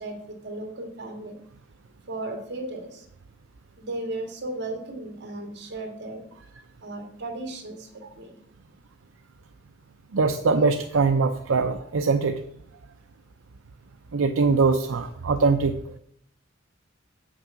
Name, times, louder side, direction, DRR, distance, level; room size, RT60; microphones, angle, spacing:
voice 1, 0.0-1.3 2.1-3.1 3.8-6.2 6.8-7.9 8.1-8.4, right 2 dB, 60° right, 2 dB, 2.5 m, -35 dB
voice 2, 10.1-12.4 14.1-15.8, right 4 dB, 80° right, 6 dB, 0.6 m, -22 dB
8.2 x 6.4 x 5.8 m, 0.69 s
head